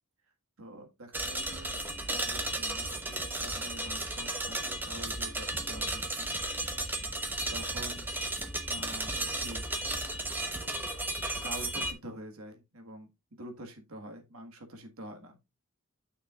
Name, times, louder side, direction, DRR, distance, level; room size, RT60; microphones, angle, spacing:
voice 1, 0.6-6.3 7.5-8.1 8.7-9.6 10.4-10.7 11.4-15.4, right 1 dB, 70° right, 1.7 m, -46 dB
sound 1, 1.1-11.9, right 2 dB, 10° right, 0.9 m, -34 dB
9.0 x 6.7 x 2.4 m
head